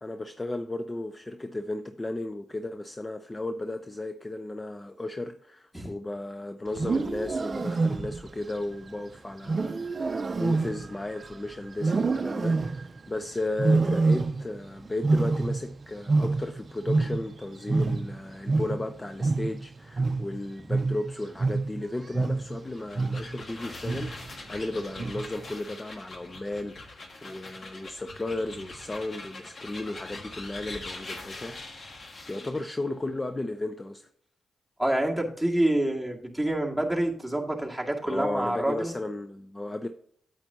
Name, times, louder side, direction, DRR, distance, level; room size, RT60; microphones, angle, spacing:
voice 1, 0.0-31.6 32.3-34.1 38.0-39.9, left 2 dB, 25° left, 0.5 m, -35 dB
Wild animals, 6.7-8.4 9.5-11.3 11.8-13.0 13.6-14.6 14.9-17.4 17.7-22.6 23.0-23.4 23.8-24.3 25.0-25.4, right 3 dB, 45° right, 0.5 m, -27 dB
sound 1, 22.6-32.7, left 2 dB, 50° left, 1.6 m, -43 dB
voice 2, 34.8-38.9, right 1 dB, 5° left, 2.1 m, -27 dB
8.8 x 8.0 x 2.8 m
supercardioid pair, 55°, 0 cm